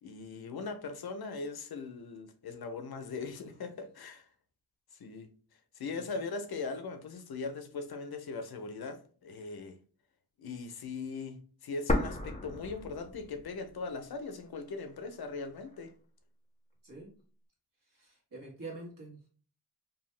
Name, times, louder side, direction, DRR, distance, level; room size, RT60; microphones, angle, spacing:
voice 1, 0.0-4.3 5.0-5.3 5.8-9.8 10.4-15.9, left 4 dB, 70° left, 0.6 m, -40 dB
sound 1, 11.9-13.8 14.1-14.2 14.9-15.9, left 1 dB, 20° left, 0.6 m, -34 dB
voice 2, 18.0-19.2, right 2 dB, 55° right, 1.4 m, -45 dB
2.7 x 2.3 x 3.1 m
cardioid pair, 40°, 38 cm